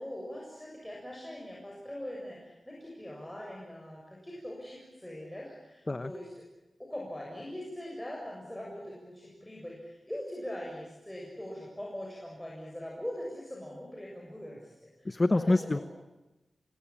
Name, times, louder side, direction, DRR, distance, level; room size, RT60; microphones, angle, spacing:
voice 1, 0.0-6.5 6.8-15.8, left 1 dB, 5° left, -3 dB, 7.3 m, -42 dB
voice 2, 15.0-15.8, left 2 dB, 30° left, 12 dB, 1.0 m, -26 dB
28.5 x 23.5 x 8.7 m, 1.0 s
wide cardioid pair, 105°, 0 cm